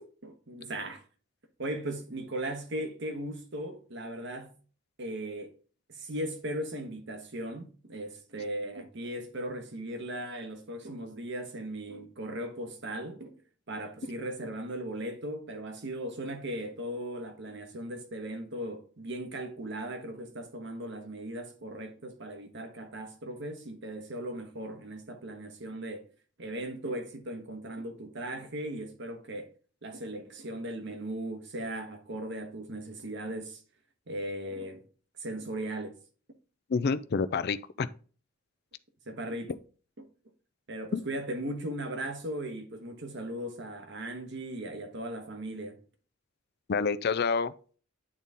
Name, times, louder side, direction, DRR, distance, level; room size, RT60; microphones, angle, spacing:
voice 1, 0.2-1.0 1.6-4.6 5.0-5.5 5.9-13.3 13.7-26.1 26.4-29.5 29.8-33.6 34.1-34.8 35.2-36.0 39.1-39.5 40.0-40.1 40.7-45.8, right 1 dB, 65° right, 1.3 m, -38 dB
voice 2, 36.7-37.9 40.9-41.0 46.7-47.5, left 5 dB, 55° left, 0.4 m, -28 dB
8.9 x 4.1 x 3.5 m
head